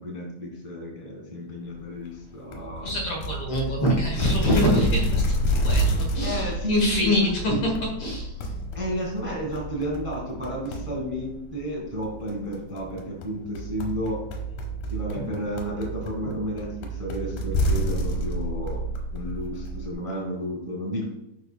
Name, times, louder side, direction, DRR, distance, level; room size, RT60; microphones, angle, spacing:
voice 1, 0.0-3.0 6.2-7.2 7.4-7.6 8.7-14.2 14.9-18.8 19.1-21.0, equal, 20° right, -3 dB, 0.8 m, -32 dB
sound 1, 2.5-19.9, equal, 80° left, 2.5 m, -29 dB
voice 2, 2.8-7.7 8.0-8.4 15.1-15.3 16.2-16.4, left 1 dB, 55° left, -1 dB, 1.9 m, -25 dB
11.0 x 5.4 x 2.3 m, 0.85 s
omnidirectional pair, 3.5 m